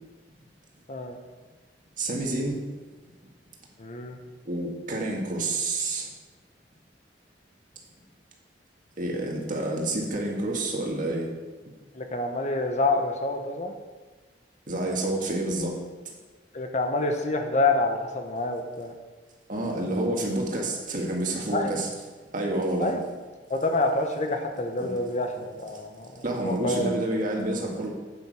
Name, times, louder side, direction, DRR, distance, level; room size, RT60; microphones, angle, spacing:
voice 1, 2.0-2.6 4.4-6.1 9.0-11.3 14.7-15.8 19.5-21.9 22.3-22.9 24.8-24.9 26.2-27.9, right 1 dB, 50° right, -1 dB, 1.9 m, -28 dB
voice 2, 3.8-4.2 11.9-13.7 16.5-18.9 21.5-21.7 22.8-23.0 23.5-26.9, left 2 dB, 40° left, 4 dB, 1.1 m, -27 dB
8.8 x 8.2 x 4.9 m, 1.3 s
head